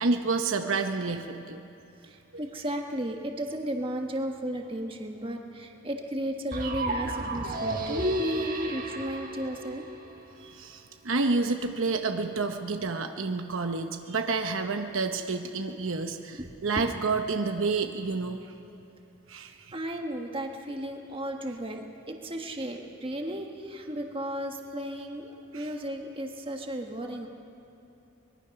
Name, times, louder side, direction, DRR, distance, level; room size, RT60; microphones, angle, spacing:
voice 1, 0.0-1.6 2.3-2.4 10.4-18.4 19.3-19.7 25.5-25.7, right 3 dB, 65° right, 5 dB, 1.0 m, -29 dB
voice 2, 2.0-9.8 16.4-16.5 16.8-16.9 19.7-27.3, right 1 dB, 25° right, 2 dB, 1.5 m, -34 dB
sound 1, 6.5-10.5, right 1 dB, 40° right, 1.6 m, -32 dB
23.5 x 21.5 x 6.0 m, 2.9 s
head